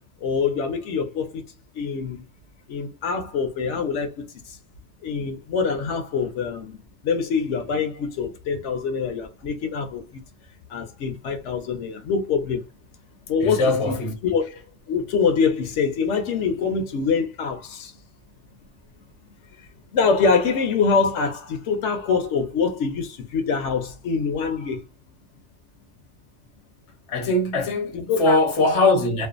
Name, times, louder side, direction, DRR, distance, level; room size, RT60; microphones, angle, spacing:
voice 1, 0.2-1.4 1.7-2.2 2.7-4.6 5.0-6.8 7.0-10.2 10.7-12.6 13.3-13.9 14.2-14.4 14.9-17.9 19.9-24.8 27.9-28.4, left 5 dB, 75° left, 0.9 m, -24 dB
voice 2, 13.4-14.1 27.1-29.3, left 2 dB, 35° left, 0.6 m, -21 dB
2.5 x 2.3 x 2.4 m
omnidirectional pair, 1.3 m